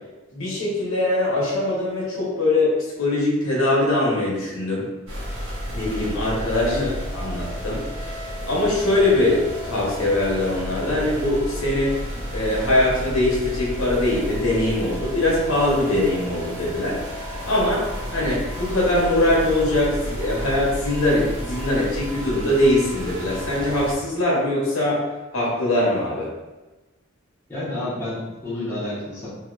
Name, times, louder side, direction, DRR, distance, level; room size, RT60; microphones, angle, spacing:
voice 1, 0.3-4.9 5.7-6.8 7.1-8.2 8.5-12.0 12.3-17.0 17.4-17.8 18.1-25.0 25.3-26.3, left 1 dB, 85° left, -5 dB, 1.0 m, -22 dB
Еvil noise (fm mod), 5.1-24.0, equal, 80° right, 1.0 m, -32 dB
voice 2, 6.6-7.0 27.5-29.3, left 1 dB, 10° left, -10 dB, 0.9 m, -29 dB
2.9 x 2.8 x 2.4 m, 1.1 s
head